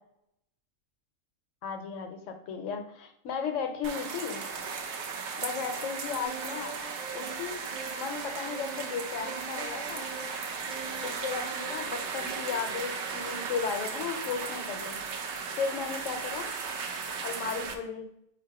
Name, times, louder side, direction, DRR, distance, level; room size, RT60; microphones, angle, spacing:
voice 1, 1.6-4.4 5.4-6.8 7.1-10.1 11.0-15.0 15.6-16.5 17.2-18.1, left 6 dB, 70° left, 5 dB, 1.0 m, -35 dB
sound 1, 3.8-17.7, right 5 dB, 65° right, 0.8 m, -36 dB
sound 2, 6.2-7.4 7.7-8.9 9.2-10.4 10.7-11.9, right 5 dB, 85° right, 0.4 m, -43 dB
3.7 x 2.8 x 4.6 m, 0.78 s
omnidirectional pair, 1.4 m